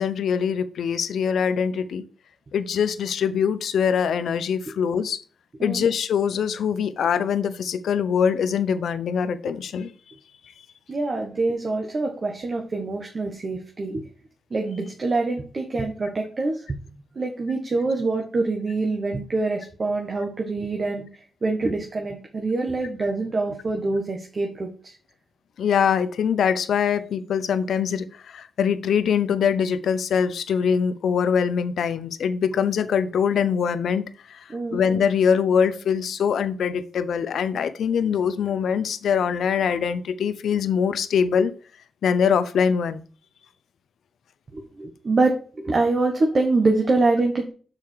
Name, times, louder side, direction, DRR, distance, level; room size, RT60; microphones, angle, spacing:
voice 1, 0.0-2.0 2.5-5.2 5.6-9.9 25.6-41.5 42.0-43.0, left 7 dB, 80° left, 0.6 m, -23 dB
voice 2, 5.6-5.9 10.9-14.0 14.5-16.7 17.1-21.1 21.4-24.9 34.5-34.8 44.5-45.3 45.6-47.5, right 3 dB, 45° right, 1.4 m, -25 dB
6.7 x 4.8 x 4.6 m
cardioid pair, 65°, 0 cm